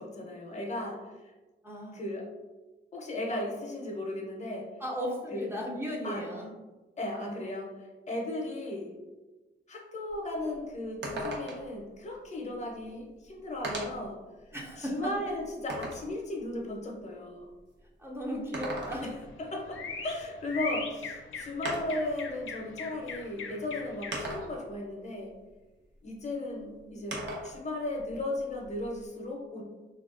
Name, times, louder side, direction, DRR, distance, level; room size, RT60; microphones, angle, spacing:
voice 1, 0.0-1.3 1.9-2.3 2.9-4.7 5.3-5.5 6.0-6.3 7.0-8.9 9.7-14.2 14.8-17.5 19.0-25.3 26.0-27.2 27.4-29.6, left 1 dB, 35° left, 0 dB, 0.6 m, -36 dB
voice 2, 1.6-2.0 4.8-6.5 14.5-15.3 18.0-19.1, equal, 10° right, -3 dB, 0.5 m, -36 dB
sound 1, 10.1-10.2 10.5-10.6 11.0-11.8 12.8-12.9 13.6-14.1 14.7-16.1 18.3-19.3 20.8-20.9 21.6-22.1 23.1-23.2 24.1-24.7 27.1-27.6 27.9-29.1, right 1 dB, 60° right, 0.7 m, -37 dB
sound 2, 18.9-24.5, left 5 dB, 85° left, 0.5 m, -41 dB
3.3 x 2.3 x 2.4 m, 1.2 s
wide cardioid pair, 105°, 20 cm